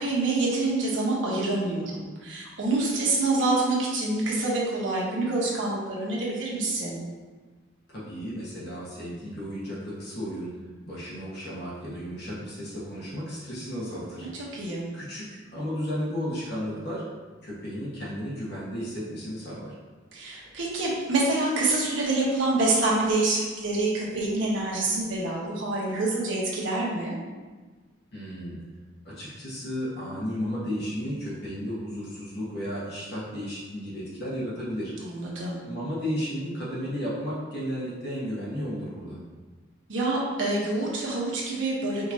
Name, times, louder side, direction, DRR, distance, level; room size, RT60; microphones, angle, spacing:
voice 1, 0.0-7.0 14.5-14.8 20.1-27.1 35.0-35.6 39.9-42.1, right 2 dB, 80° right, -5 dB, 1.1 m, -26 dB
voice 2, 7.9-10.6 10.8-14.3 14.9-17.0 17.4-19.7 28.1-28.6 29.0-34.9 35.6-39.2, equal, 55° left, -7 dB, 1.5 m, -33 dB
5.1 x 3.0 x 2.8 m, 1.4 s
head